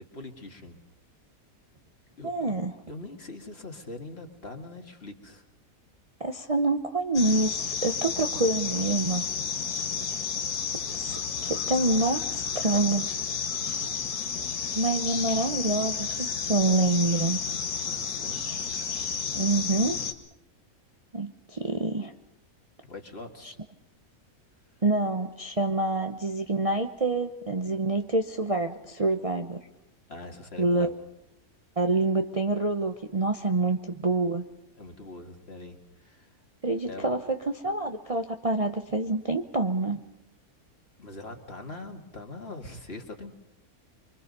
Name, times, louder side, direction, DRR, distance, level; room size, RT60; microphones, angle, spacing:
voice 1, 0.1-0.7 2.2-2.6 2.9-5.4 17.8-18.5 22.9-23.6 30.1-30.9 34.8-36.3 36.9-37.1 41.0-43.3, left 2 dB, 45° left, 4 dB, 2.3 m, -42 dB
voice 2, 2.2-2.7 6.2-9.2 11.0-13.1 14.7-17.4 19.3-20.0 21.1-22.1 23.4-23.5 24.8-29.6 30.6-30.9 31.8-34.4 36.6-40.0, right 2 dB, 30° right, 4 dB, 0.8 m, -27 dB
sound 1, 7.1-20.1, left 6 dB, 85° left, 1.9 m, -31 dB
25.0 x 24.5 x 5.5 m, 0.85 s
omnidirectional pair, 1.5 m